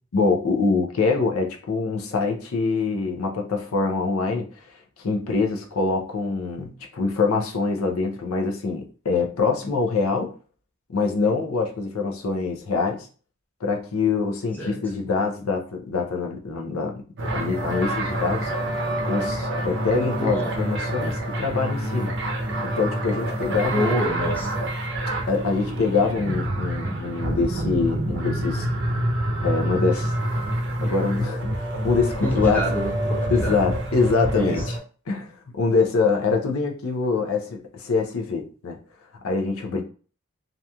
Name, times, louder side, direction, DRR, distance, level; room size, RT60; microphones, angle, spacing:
voice 1, 0.1-10.3 10.9-13.1 13.6-17.0 17.3-18.5 19.0-22.1 22.6-23.9 25.3-28.7 29.4-30.1 30.8-32.6 33.3-34.8 35.1-38.8 39.2-39.8, left 4 dB, 90° left, 3 dB, 0.6 m, -24 dB
sound 1, 17.2-34.8, right 1 dB, 55° right, 0.6 m, -27 dB
voice 2, 20.2-20.6 23.7-24.5 32.2-33.6 34.3-34.7, equal, 10° left, -3 dB, 0.6 m, -27 dB
2.8 x 2.4 x 2.2 m, 0.39 s
head